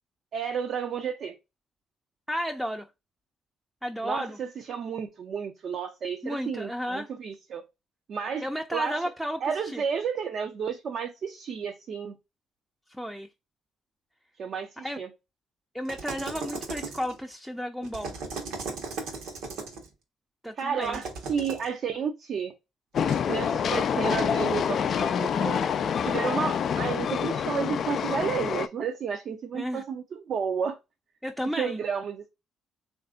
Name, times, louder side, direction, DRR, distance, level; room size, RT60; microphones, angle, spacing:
voice 1, 0.3-1.3 4.0-7.6 8.1-8.4 8.7-9.1 9.4-12.2 14.4-15.1 20.6-22.5 23.3-25.6 26.0-30.8 31.6-32.3, right 6 dB, 60° right, 0.5 m, -31 dB
voice 2, 2.3-2.9 3.8-4.4 6.2-7.1 8.4-9.8 12.9-13.3 14.8-15.0 15.7-18.1 20.4-21.0 29.5-29.8 31.2-31.8, equal, 5° right, 0.5 m, -33 dB
sound 1, 15.9-17.2 17.8-19.9 20.8-21.7 23.0-23.2, right 4 dB, 80° right, 1.0 m, -37 dB
Train, 22.9-28.7, left 7 dB, 60° left, 0.3 m, -27 dB
3.2 x 2.5 x 3.6 m
supercardioid pair, 60°, 0 cm